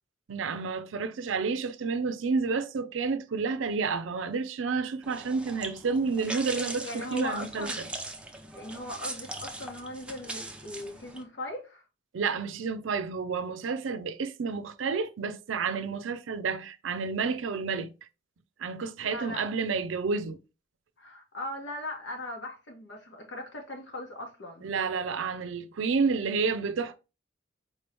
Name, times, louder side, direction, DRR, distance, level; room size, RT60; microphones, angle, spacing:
voice 1, 0.3-7.9 12.1-17.9 18.6-20.4 24.6-27.0, right 5 dB, 80° right, 0.5 m, -30 dB
sound 1, 5.0-11.2, right 2 dB, 5° right, 0.5 m, -40 dB
voice 2, 6.8-7.9 8.5-11.8 19.0-19.4 21.0-24.7, left 1 dB, 70° left, 1.3 m, -39 dB
4.5 x 3.0 x 3.3 m
head